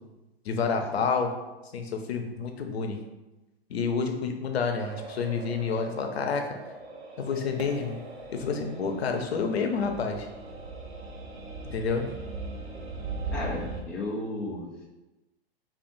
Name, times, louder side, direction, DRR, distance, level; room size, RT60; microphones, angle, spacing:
voice 1, 0.4-1.3 1.7-3.0 3.7-6.5 7.2-8.0 8.3-10.3 11.7-12.1, left 5 dB, 80° left, 5 dB, 0.7 m, -29 dB
sound 1, 4.8-13.8, right 2 dB, 85° right, 0.9 m, -39 dB
voice 2, 13.3-14.9, left 2 dB, 5° left, -3 dB, 0.3 m, -34 dB
5.1 x 2.5 x 2.6 m, 1.0 s
hypercardioid pair, 115°, 31 cm